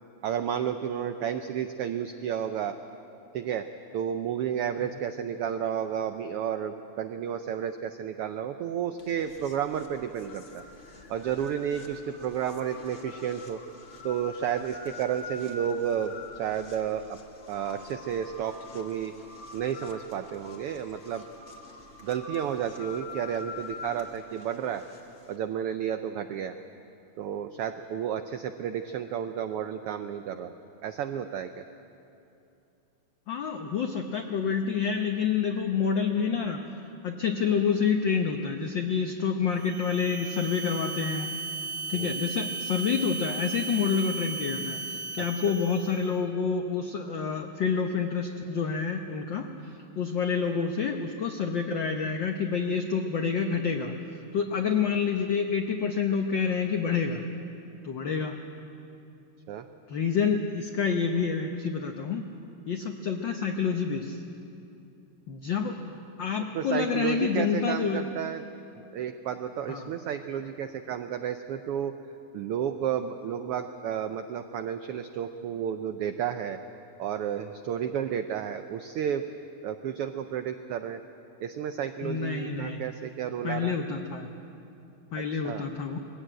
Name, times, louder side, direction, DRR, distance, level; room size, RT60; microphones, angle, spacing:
voice 1, 0.2-2.8 3.3-3.7 3.9-10.6 11.1-13.6 14.0-17.2 17.5-19.1 19.5-21.2 22.0-24.9 25.3-26.5 27.2-30.5 30.8-31.6 41.9-42.4 45.2-45.5 59.5-59.7 66.5-68.4 68.9-71.9 72.3-76.6 77.0-79.2 79.6-81.0 81.4-83.8 85.4-85.7, right 9 dB, 85° right, 8 dB, 1.2 m, -32 dB
sound 1, 9.0-25.4, left 3 dB, 40° left, 1.0 m, -45 dB
voice 2, 33.3-36.6 37.0-41.3 41.9-44.8 45.1-53.9 54.3-57.2 57.8-58.4 59.9-62.2 62.7-64.2 65.3-65.7 66.2-68.0 69.7-69.9 82.0-82.9 83.4-84.3 85.1-86.0, left 6 dB, 70° left, 4 dB, 1.1 m, -28 dB
sound 2, 39.5-46.1, right 4 dB, 20° right, 1.7 m, -36 dB
21.0 x 16.0 x 9.0 m, 2.8 s
omnidirectional pair, 3.3 m